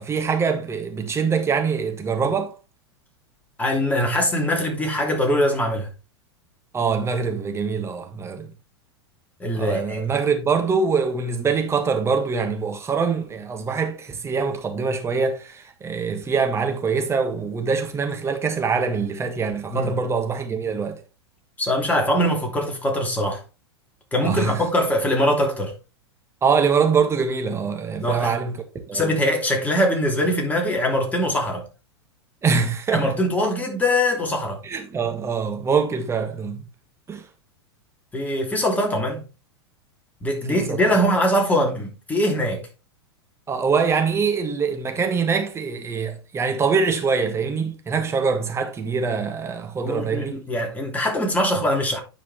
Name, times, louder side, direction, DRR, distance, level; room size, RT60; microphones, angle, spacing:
voice 1, 0.0-2.5 6.7-8.5 9.5-21.0 24.2-24.6 26.4-29.1 32.4-33.1 34.6-36.6 37.1-37.2 40.5-41.0 43.5-50.4, right 5 dB, 20° right, 1.5 m, -24 dB
voice 2, 3.6-5.9 9.4-10.0 19.7-20.0 21.6-23.4 24.1-25.7 28.0-28.4 28.9-31.6 32.9-34.6 38.1-39.2 40.2-42.6 49.8-52.0, equal, 10° left, 2.9 m, -22 dB
9.6 x 5.1 x 3.5 m
figure-of-eight pair, 95°, 14 cm